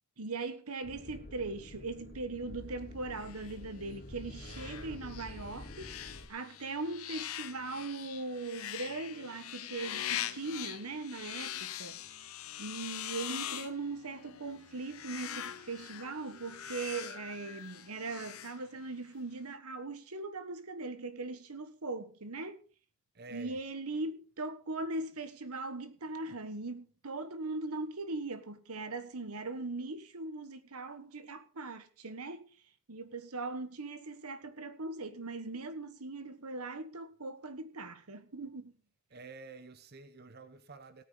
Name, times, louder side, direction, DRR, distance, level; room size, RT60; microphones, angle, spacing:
voice 1, 0.2-12.0 12.6-22.6 23.3-32.4 32.9-38.7, right 3 dB, 85° right, 1.4 m, -40 dB
sound 1, 0.8-6.3, left 1 dB, 45° left, 1.4 m, -48 dB
sound 2, 3.2-19.1, left 11 dB, 75° left, 0.9 m, -43 dB
voice 2, 4.4-5.0 23.1-23.6 39.1-41.0, right 3 dB, 45° right, 0.9 m, -50 dB
17.5 x 9.2 x 3.9 m
head